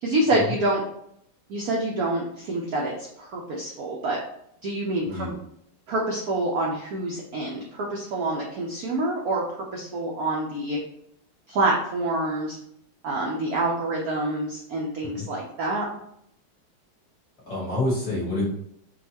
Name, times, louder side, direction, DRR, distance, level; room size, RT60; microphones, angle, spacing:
voice 1, 0.0-0.8 1.5-2.9 3.2-4.2 4.6-5.3 5.9-9.4 9.7-10.8 11.5-12.6 13.0-15.9, right 2 dB, 75° right, -2 dB, 0.8 m, -26 dB
voice 2, 5.0-5.4 15.0-15.2 17.5-18.5, left 2 dB, 50° left, -6 dB, 1.9 m, -27 dB
5.3 x 2.3 x 2.8 m, 0.72 s
omnidirectional pair, 2.3 m